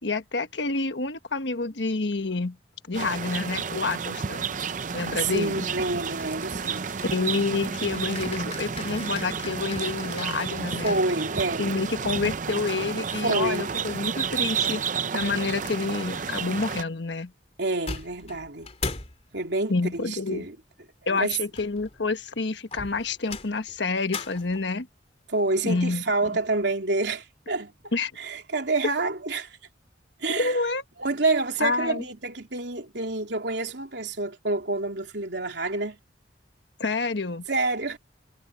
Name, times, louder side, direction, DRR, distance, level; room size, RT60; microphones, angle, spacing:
voice 1, 0.0-2.6 2.9-4.5 4.9-5.7 7.1-11.0 11.6-14.8 15.1-17.3 19.7-20.5 21.1-24.9 25.6-26.0 27.9-28.1 30.3-30.8 31.6-32.0 36.8-37.4, left 3 dB, 80° left, 1.4 m, -28 dB
sound 1, 2.9-16.8, right 6 dB, 45° right, 0.6 m, -31 dB
voice 2, 5.1-6.9 10.6-11.7 13.2-14.0 17.6-18.7 19.3-20.5 21.1-21.4 25.3-29.6 30.2-30.6 31.0-36.0 37.5-38.0, right 3 dB, 75° right, 3.3 m, -28 dB
sound 2, 6.1-11.7 13.1-13.9 14.3-15.4 17.5-17.6 17.9-19.3 21.3-22.1 22.7-24.8, left 4 dB, 35° left, 2.8 m, -41 dB
head